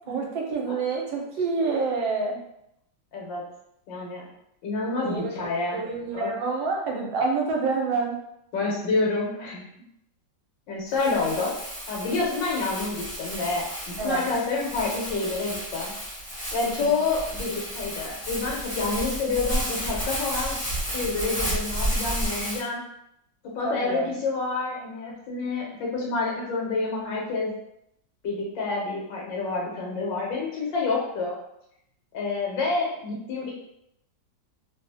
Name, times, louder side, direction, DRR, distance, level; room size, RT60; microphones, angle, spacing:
voice 1, 0.1-2.4 5.1-5.2 5.7-8.1 14.0-14.3 16.6-17.0 23.6-24.2, right 4 dB, 85° right, 0 dB, 1.4 m, -27 dB
voice 2, 3.9-4.2 4.6-5.8 6.1-6.3 8.5-9.6 10.7-11.5 11.9-15.9 16.5-20.6 20.9-22.8 23.5-27.5 28.2-31.3 32.1-33.5, left 3 dB, 80° left, -3 dB, 1.5 m, -28 dB
Crumpling crinkling, 10.9-22.6, equal, 20° left, 0.5 m, -32 dB
3.2 x 2.4 x 2.6 m, 0.78 s
omnidirectional pair, 2.0 m